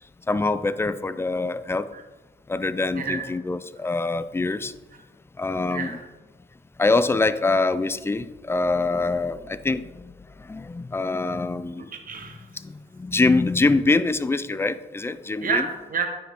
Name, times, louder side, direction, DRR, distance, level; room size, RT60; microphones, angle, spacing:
voice 1, 0.3-1.9 2.5-4.7 5.4-6.0 6.8-11.9 12.6-15.6, left 3 dB, 10° left, 14 dB, 0.3 m, -24 dB
voice 2, 2.9-3.2 5.7-6.0 11.9-12.5 15.4-16.1, right 5 dB, 45° right, 4 dB, 1.1 m, -29 dB
9.1 x 4.8 x 3.6 m, 1.2 s
cardioid pair, 90°, 20 cm